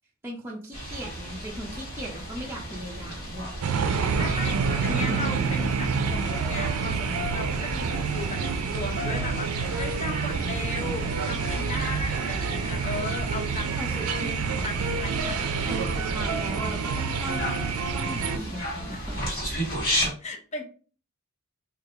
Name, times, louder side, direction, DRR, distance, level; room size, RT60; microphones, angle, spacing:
voice 1, 0.2-3.5 4.9-5.4 13.7-14.1 15.6-17.6 17.9-19.2, equal, 10° right, -3 dB, 0.5 m, -38 dB
sound 1, 0.7-20.1, equal, 45° left, 1.4 m, -35 dB
sound 2, 3.6-18.4, right 5 dB, 80° right, 0.4 m, -28 dB
voice 2, 4.2-14.3 14.6-15.4 18.9-19.0 19.5-19.6 20.2-20.6, left 3 dB, 30° left, 3 dB, 0.6 m, -37 dB
3.2 x 2.3 x 3.4 m, 0.39 s
head